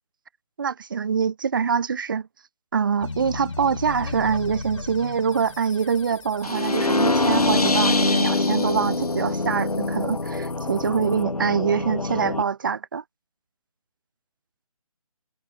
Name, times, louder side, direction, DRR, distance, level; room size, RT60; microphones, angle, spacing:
voice 1, 0.6-2.3 2.7-13.0, right 6 dB, 35° right, 1.0 m, -24 dB
sound 1, 3.0-7.4, left 3 dB, 55° left, 2.8 m, -35 dB
sound 2, 5.3-11.2, left 7 dB, 5° left, 2.8 m, -47 dB
sound 3, 6.4-12.4, left 2 dB, 80° left, 1.0 m, -24 dB
figure-of-eight pair, 150°, 19 cm